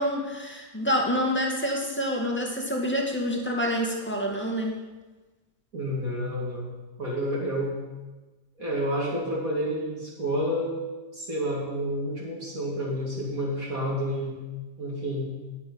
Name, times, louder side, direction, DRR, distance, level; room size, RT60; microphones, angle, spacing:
voice 1, 0.0-4.8, equal, 5° left, 0 dB, 1.9 m, -27 dB
voice 2, 5.7-6.7 7.0-7.7 8.6-10.8 11.1-14.4 14.8-15.3, equal, 55° right, -5 dB, 2.9 m, -29 dB
14.5 x 9.0 x 5.5 m, 1.2 s
omnidirectional pair, 1.8 m